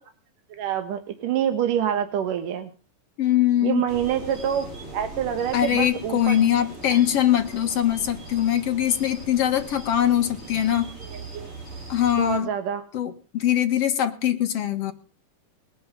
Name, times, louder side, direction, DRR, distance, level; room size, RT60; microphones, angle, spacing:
voice 1, 0.5-2.7 3.6-6.4 6.9-7.0 10.7-10.8 11.1-11.5 12.2-12.8, right 9 dB, 70° right, 8 dB, 2.8 m, -26 dB
voice 2, 3.2-3.8 5.5-10.9 11.9-12.5 12.9-14.9, left 11 dB, 55° left, 6 dB, 2.0 m, -22 dB
sound 1, 3.9-12.4, right 2 dB, 35° right, 7.5 m, -40 dB
21.0 x 9.9 x 5.7 m, 0.38 s
omnidirectional pair, 4.2 m